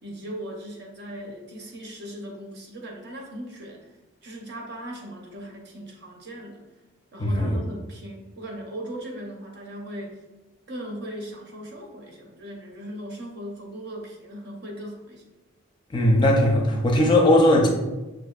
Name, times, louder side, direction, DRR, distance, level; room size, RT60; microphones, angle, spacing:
voice 1, 0.0-3.9 4.2-6.7 7.1-10.2 10.7-15.2, equal, 55° right, 1 dB, 0.7 m, -38 dB
voice 2, 7.2-7.6 15.9-17.7, left 1 dB, 25° left, 0 dB, 0.4 m, -18 dB
6.1 x 2.6 x 2.3 m, 1.1 s
head